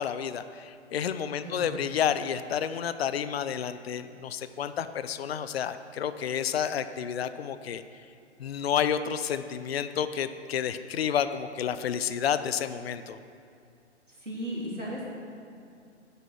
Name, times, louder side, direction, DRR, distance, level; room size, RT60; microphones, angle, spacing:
voice 1, 0.0-7.8 8.4-13.2, left 8 dB, 55° left, 12 dB, 0.6 m, -30 dB
voice 2, 1.4-1.8 14.1-15.1, equal, 90° right, -4 dB, 3.2 m, -36 dB
9.9 x 8.9 x 6.1 m, 2.6 s
figure-of-eight pair, 120°, 36 cm